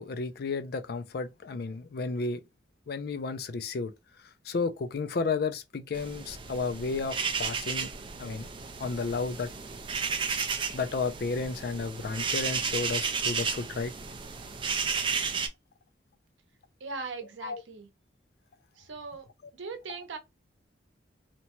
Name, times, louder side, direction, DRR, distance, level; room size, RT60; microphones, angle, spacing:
voice 1, 0.0-2.4 2.9-3.9 4.5-7.9 8.2-8.5 8.8-9.5 10.7-13.9 17.4-17.6, left 4 dB, 55° left, 0.4 m, -32 dB
sound 1, 5.9-15.5, right 5 dB, 25° right, 0.3 m, -33 dB
voice 2, 16.8-17.9 18.8-19.3 19.5-20.2, right 4 dB, 80° right, 0.7 m, -39 dB
2.8 x 2.2 x 2.9 m
head